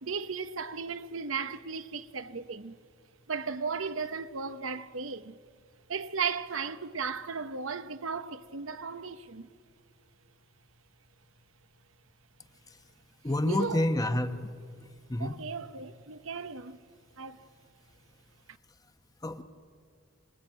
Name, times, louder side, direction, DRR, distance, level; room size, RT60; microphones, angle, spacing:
voice 1, 0.0-2.8 3.3-5.4 5.9-9.5 13.4-13.8 15.2-16.8 17.2-17.4, right 5 dB, 75° right, 0.9 m, -35 dB
voice 2, 13.2-14.5 15.1-15.4 19.2-19.4, left 1 dB, 20° left, 1.0 m, -28 dB
25.5 x 21.5 x 8.8 m
head